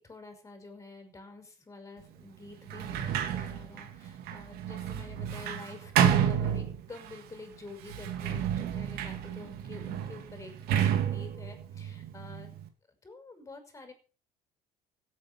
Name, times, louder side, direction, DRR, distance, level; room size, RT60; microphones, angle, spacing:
voice 1, 0.0-12.6 12.9-13.9, left 3 dB, 20° left, 6 dB, 5.7 m, -48 dB
Sliding door, 2.7-7.2 7.8-12.7, right 9 dB, 75° right, 2.7 m, -30 dB
16.5 x 9.2 x 6.0 m, 0.37 s
cardioid pair, 130°, 16 cm